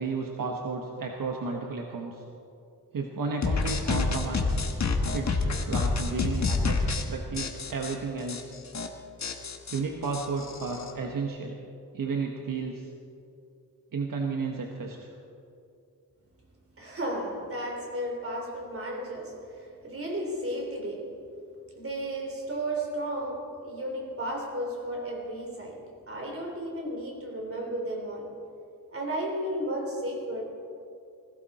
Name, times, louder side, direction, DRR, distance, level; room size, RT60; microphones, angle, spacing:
voice 1, 0.0-2.2 2.9-4.6 5.1-8.6 9.7-11.5 11.9-12.9 13.9-15.1, right 4 dB, 70° right, 1 dB, 1.3 m, -33 dB
sound 1, 3.4-7.0 7.4-7.9 8.3-8.4 8.7-8.9 9.2-10.9, left 3 dB, 50° left, 1.5 m, -28 dB
voice 2, 16.8-21.2 21.7-28.3 28.9-30.4, right 1 dB, 40° right, -1 dB, 3.5 m, -34 dB
20.5 x 15.5 x 4.3 m, 2.6 s
wide cardioid pair, 165°, 34 cm